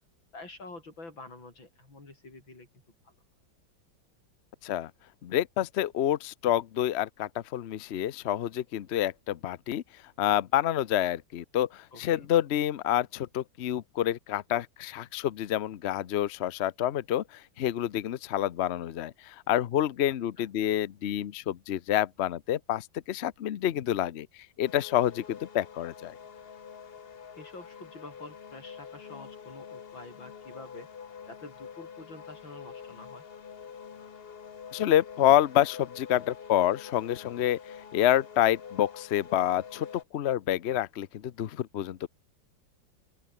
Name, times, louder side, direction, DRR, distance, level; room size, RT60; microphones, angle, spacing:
voice 1, 0.3-2.7 3.0-3.2 11.9-12.3 20.4-20.5 27.4-30.9 31.3-33.2, left 2 dB, 85° left, 7.4 m, -47 dB
voice 2, 5.2-9.8 10.2-17.2 17.6-24.3 24.6-26.1 34.7-37.6 37.9-39.9 40.1-42.1, left 12 dB, 65° left, 0.6 m, -28 dB
sound 1, 24.6-40.0, left 7 dB, 40° left, 0.9 m, -46 dB
open air
omnidirectional pair, 2.1 m